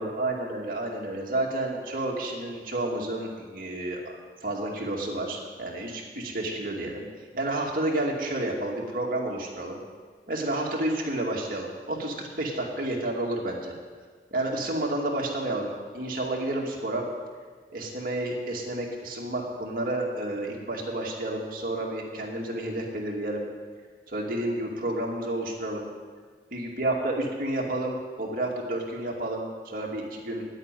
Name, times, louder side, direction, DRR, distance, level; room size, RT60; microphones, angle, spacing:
voice 1, 0.0-7.0 7.3-9.8 10.3-13.7 14.3-17.0 17.7-23.5 24.1-25.9 26.5-30.5, right 1 dB, 50° right, -1 dB, 2.4 m, -30 dB
10.5 x 9.0 x 9.1 m, 1.5 s
head